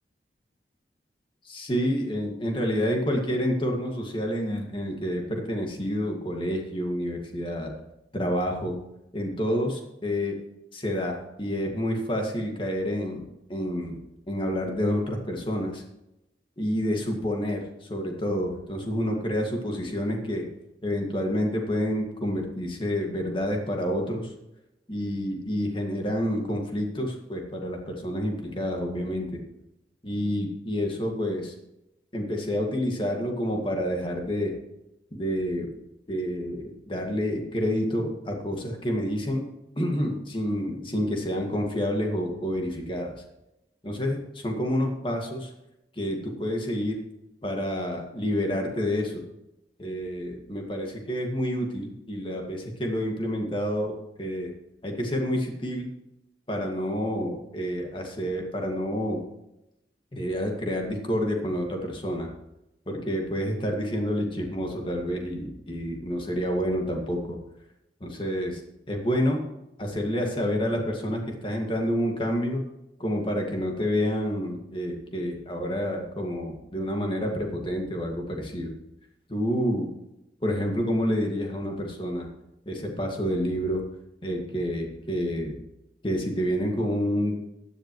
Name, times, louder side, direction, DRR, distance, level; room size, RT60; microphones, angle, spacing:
voice 1, 1.4-7.7 8.1-8.8 9.1-10.4 10.7-13.2 13.5-14.0 14.3-15.8 16.6-20.5 20.8-24.3 24.9-29.3 30.0-31.5 32.1-34.5 35.1-35.7 36.1-39.4 39.8-43.2 43.8-45.5 46.0-47.0 47.4-49.2 49.8-54.5 54.8-55.9 56.5-59.2 60.1-62.3 62.9-67.4 68.0-68.6 68.9-69.4 69.8-72.6 73.0-78.7 79.3-79.9 80.4-82.3 82.7-83.8 84.2-85.6 86.0-87.4, equal, 30° left, 2 dB, 2.0 m, -28 dB
15.5 x 10.5 x 3.1 m, 0.89 s
head